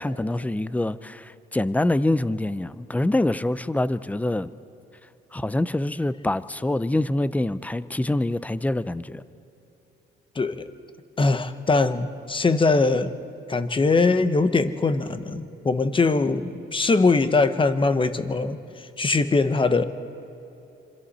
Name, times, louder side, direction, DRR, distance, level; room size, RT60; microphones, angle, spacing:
voice 1, 0.0-4.5 5.3-9.2, left 1 dB, 5° left, 15 dB, 0.6 m, -25 dB
voice 2, 10.3-10.7 11.2-13.1 13.5-18.6 19.0-19.8, left 3 dB, 25° left, 10 dB, 1.1 m, -21 dB
26.5 x 24.0 x 4.3 m, 3.0 s
cardioid pair, 90°, 20 cm